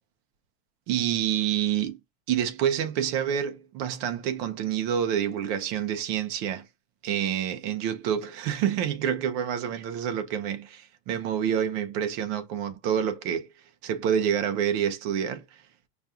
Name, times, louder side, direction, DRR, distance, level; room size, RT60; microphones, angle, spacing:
voice 1, 0.9-2.0 2.3-6.7 7.0-13.5 13.8-15.4, right 9 dB, 50° right, 0.8 m, -27 dB
5.3 x 2.4 x 2.7 m
supercardioid pair, 165°, 32 cm